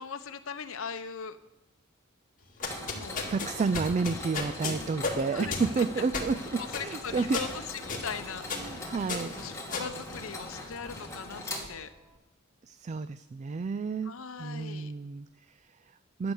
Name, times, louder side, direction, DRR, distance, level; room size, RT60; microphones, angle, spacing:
voice 1, 0.0-1.4 2.9-3.2 5.3-6.1 6.6-8.9 9.4-11.9 14.0-14.9, left 6 dB, 70° left, 9 dB, 0.8 m, -40 dB
sound 1, 2.4-10.8, left 4 dB, 40° left, 2.0 m, -36 dB
Mechanisms, 2.6-12.2, left 2 dB, 15° left, 2.6 m, -41 dB
voice 2, 3.3-7.4 8.5-9.4 12.7-14.1 14.4-16.3, right 4 dB, 35° right, 13 dB, 0.3 m, -31 dB
11.5 x 7.9 x 7.1 m, 0.96 s
head